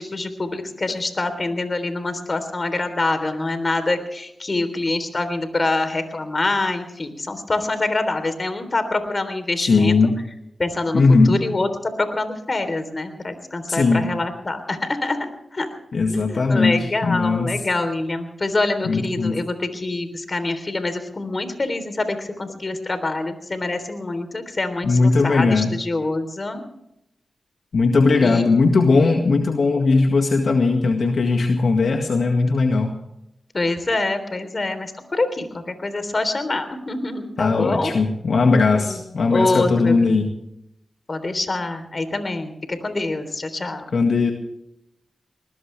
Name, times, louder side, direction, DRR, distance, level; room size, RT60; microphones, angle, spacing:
voice 1, 0.0-10.1 10.6-15.8 16.1-26.6 28.2-28.5 33.5-38.0 38.8-39.0 39.3-40.2 41.1-43.9, left 2 dB, 45° left, 9 dB, 3.5 m, -25 dB
voice 2, 9.6-10.2 10.9-11.4 13.7-14.1 15.9-17.5 18.8-19.3 24.8-25.7 27.7-32.9 37.4-40.3 43.9-44.3, left 3 dB, 70° left, 3 dB, 1.9 m, -18 dB
21.5 x 19.0 x 3.4 m, 0.81 s
cardioid pair, 50°, 0 cm